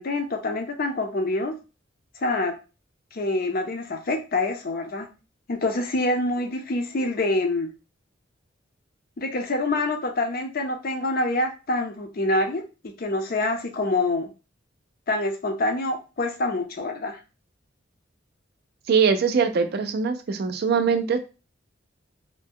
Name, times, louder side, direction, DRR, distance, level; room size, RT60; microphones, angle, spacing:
voice 1, 0.0-1.5 2.2-2.5 3.1-5.1 5.5-7.7 9.2-14.3 15.1-17.2, left 2 dB, 50° left, 4 dB, 0.5 m, -26 dB
voice 2, 18.9-21.2, right 5 dB, 55° right, 8 dB, 0.4 m, -22 dB
2.7 x 2.1 x 3.5 m, 0.31 s
head